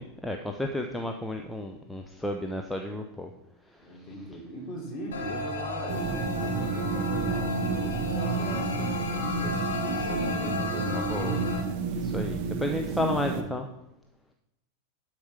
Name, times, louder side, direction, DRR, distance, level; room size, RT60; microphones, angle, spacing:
voice 1, 0.0-3.3 10.9-11.4 12.0-13.6, left 1 dB, 5° left, 3 dB, 0.7 m, -32 dB
voice 2, 3.8-11.6 12.7-13.5, right 1 dB, 30° left, -1 dB, 3.5 m, -40 dB
sound 1, 5.1-11.6, left 2 dB, 65° left, 1.4 m, -33 dB
sound 2, 5.9-13.4, right 5 dB, 45° right, 0.9 m, -31 dB
11.5 x 4.8 x 5.8 m, 0.85 s
figure-of-eight pair, 90°, 0 cm